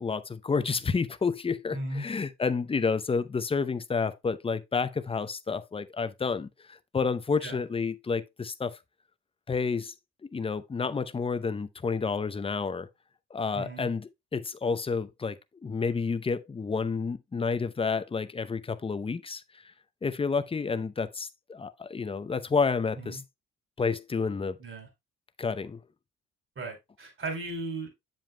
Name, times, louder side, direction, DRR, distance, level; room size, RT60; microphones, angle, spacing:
voice 1, 0.0-8.8 9.5-9.9 10.3-12.9 13.3-15.4 15.6-19.4 20.0-23.2 23.8-24.6 25.4-25.8, left 5 dB, 20° left, 0.6 m, -30 dB
voice 2, 1.7-2.1 7.4-7.6 13.5-13.9 22.9-23.2 24.6-24.9 26.5-27.9, right 2 dB, 40° right, 3.2 m, -36 dB
7.7 x 7.2 x 2.2 m
cardioid pair, 90°, 30 cm